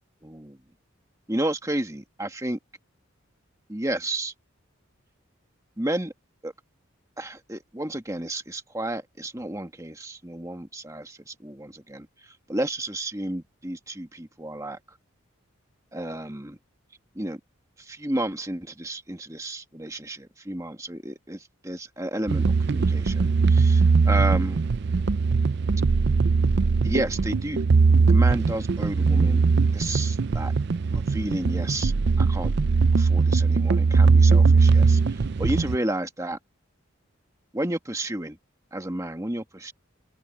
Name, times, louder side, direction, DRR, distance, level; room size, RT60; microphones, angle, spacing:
voice 1, 0.2-0.6 1.3-2.6 3.7-4.3 5.8-6.1 6.4-6.5 7.2-14.8 15.9-16.6 17.2-17.4 17.8-24.6 26.8-27.6 28.1-29.4 29.7-30.5 30.9-32.5 33.0-36.4 37.5-38.4 38.7-39.7, right 1 dB, 15° right, 1.8 m, -31 dB
sound 1, 22.3-35.8, right 4 dB, 55° right, 0.5 m, -20 dB
open air
head